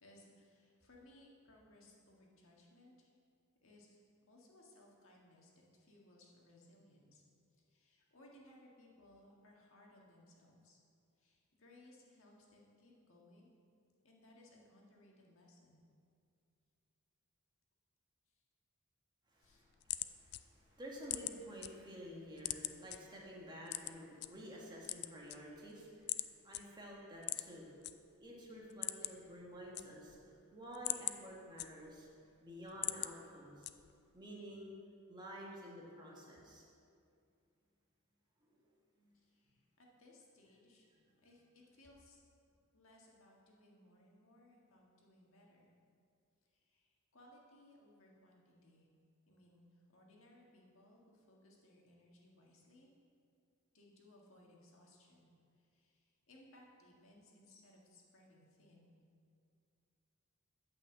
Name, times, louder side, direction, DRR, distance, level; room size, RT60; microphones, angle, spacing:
voice 1, 0.0-3.1 3.6-4.0 4.3-7.2 7.6-10.8 11.2-13.5 14.0-15.9 19.4-19.7 39.1-40.9 41.2-42.2 42.7-45.7 46.5-48.9 49.3-52.9 53.7-59.0, left 1 dB, 70° left, -2 dB, 1.7 m, -64 dB
voice 2, 19.3-27.7 28.2-32.1 32.4-33.7 34.1-34.7 35.1-36.6 38.5-38.6 39.0-39.1, equal, 20° right, -3 dB, 1.7 m, -51 dB
sound 1, 19.4-21.7 22.1-23.0 23.7-24.3 24.7-25.7 26.1-26.3 26.5-26.6 27.2-27.9 28.3-28.4 28.7-29.3 29.6-30.2 30.6-32.1 32.5-33.1 33.6-34.1, left 15 dB, 55° left, 0.3 m, -41 dB
8.8 x 5.7 x 7.6 m, 2.4 s
head